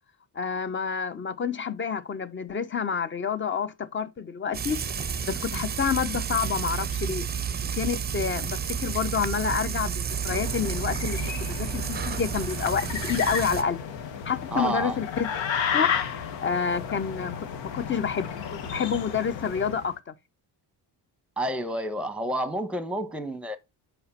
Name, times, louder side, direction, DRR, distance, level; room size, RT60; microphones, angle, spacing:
voice 1, 0.3-4.8 5.3-7.3 7.7-13.8 14.3-15.9 16.4-17.5 17.7-20.1, left 6 dB, 25° left, 0.8 m, -29 dB
Frying (food), 4.5-13.6, right 7 dB, 25° right, 0.6 m, -31 dB
sound 1, 10.1-19.9, left 7 dB, 85° left, 1.4 m, -33 dB
voice 2, 14.5-15.0 21.4-23.6, right 1 dB, 5° right, 1.1 m, -29 dB
5.5 x 5.3 x 5.6 m
cardioid pair, 115°, 43 cm